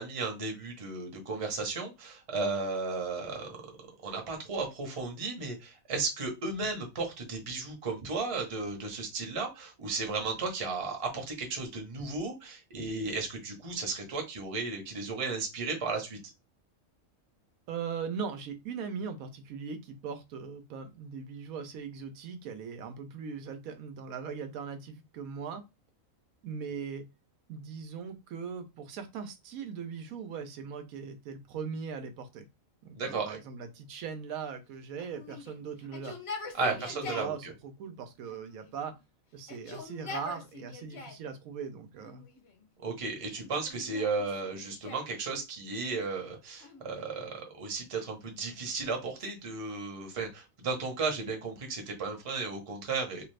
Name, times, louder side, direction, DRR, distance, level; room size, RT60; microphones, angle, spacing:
voice 1, 0.0-3.6 4.0-16.2 33.0-33.4 36.6-37.3 42.8-53.2, right 4 dB, 30° right, 0.7 m, -34 dB
voice 2, 17.7-25.6 26.4-27.0 27.5-32.4 32.8-36.2 36.6-38.9 39.3-42.2, right 6 dB, 90° right, 1.1 m, -40 dB
Yell, 35.0-37.4 38.2-39.0 39.4-41.3 42.0-42.7 43.4-45.2 46.5-47.4 48.2-50.0, left 4 dB, 50° left, 1.0 m, -45 dB
2.7 x 2.4 x 3.2 m
omnidirectional pair, 1.4 m